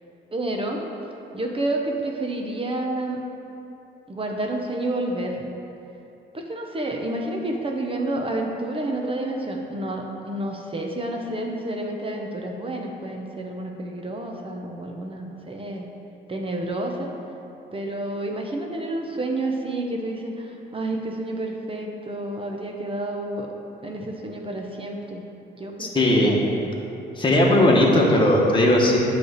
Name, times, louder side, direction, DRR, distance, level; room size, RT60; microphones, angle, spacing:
voice 1, 0.3-0.8 1.3-3.2 4.1-5.4 6.3-15.9 16.3-17.1 17.7-23.5 23.8-25.2 25.6-26.7, right 1 dB, 25° right, 1 dB, 0.8 m, -29 dB
voice 2, 25.8-26.3 27.2-29.0, left 1 dB, 25° left, -2 dB, 1.3 m, -18 dB
9.1 x 3.4 x 6.4 m, 2.9 s
cardioid pair, 90°, 20 cm